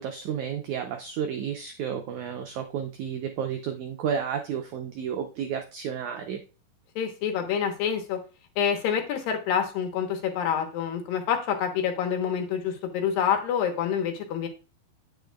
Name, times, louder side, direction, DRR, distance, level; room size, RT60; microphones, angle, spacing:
voice 1, 0.0-6.4, right 8 dB, 85° right, 5 dB, 1.7 m, -32 dB
voice 2, 7.0-8.2 8.6-14.5, left 8 dB, 75° left, 4 dB, 2.8 m, -27 dB
8.9 x 8.3 x 2.3 m, 0.32 s
omnidirectional pair, 4.4 m